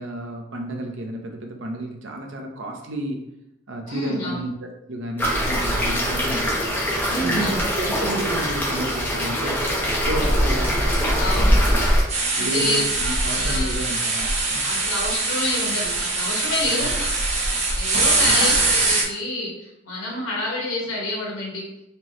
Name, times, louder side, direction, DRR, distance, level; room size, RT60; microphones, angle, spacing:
voice 1, 0.0-3.3 3.7-6.6 7.2-11.9 12.4-14.6 16.6-16.9 18.2-18.4, right 1 dB, 65° right, 3 dB, 0.7 m, -31 dB
voice 2, 3.9-4.4 7.1-7.6 11.2-11.6 12.3-13.8 14.6-17.1 17.7-21.7, left 2 dB, 85° left, -3 dB, 1.5 m, -28 dB
sound 1, 5.2-12.0, equal, 10° left, 0.9 m, -22 dB
sound 2, 12.1-19.0, right 3 dB, 35° right, 0.7 m, -22 dB
4.5 x 2.9 x 3.0 m, 0.86 s
head